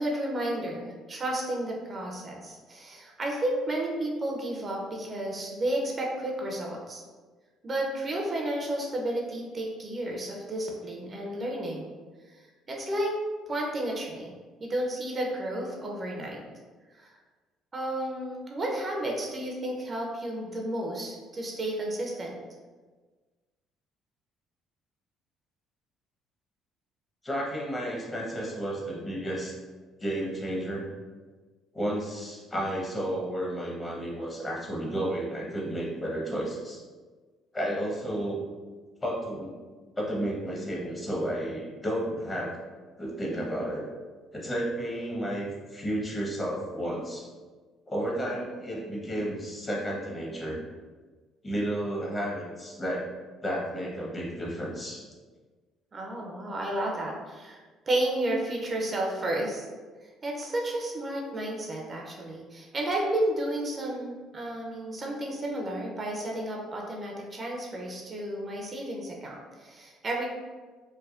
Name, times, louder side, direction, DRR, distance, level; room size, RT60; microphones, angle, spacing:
voice 1, 0.0-7.0 7.6-11.9 12.7-13.1 13.5-14.3 14.6-16.4 17.0-17.1 17.7-22.4 55.9-59.7 60.2-70.3, right 1 dB, 40° right, -1 dB, 0.6 m, -32 dB
voice 2, 27.2-29.6 30.0-30.8 31.7-36.8 37.5-38.4 39.0-39.5 40.0-42.6 43.0-43.8 44.3-47.3 47.9-50.6 51.4-53.0 53.4-55.1, right 1 dB, 25° left, -3 dB, 0.9 m, -32 dB
3.3 x 2.1 x 2.4 m, 1.4 s
hypercardioid pair, 65°, 0 cm